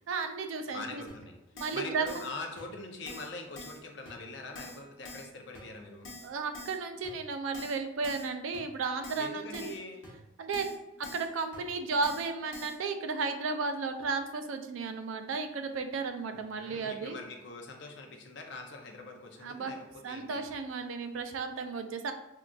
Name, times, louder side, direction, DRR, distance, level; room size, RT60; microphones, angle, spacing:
voice 1, 0.1-1.0 1.5-2.3 6.2-9.7 10.4-17.2 19.4-19.7 20.0-22.1, right 4 dB, 85° right, 7 dB, 0.3 m, -34 dB
voice 2, 0.7-1.3 1.7-6.1 9.2-10.1 16.3-20.4, left 3 dB, 65° left, 2 dB, 0.5 m, -43 dB
Keyboard (musical), 1.1-1.2 1.6-1.8 2.1-2.3 2.6-2.7 3.1-3.3 3.6-3.8 4.1-4.2 4.5-4.8 5.0-5.3 5.5-5.6 6.0-6.3 6.5-6.8 7.0-7.1 7.5-7.8 8.0-8.3 8.5-8.6 9.0-9.3 9.5-9.8 10.0-10.1 10.5-10.8 11.0-11.3 11.5-11.6 12.0-12.3 12.5-12.7, left 2 dB, 80° left, 0.9 m, -46 dB
3.7 x 2.4 x 2.3 m, 0.95 s
head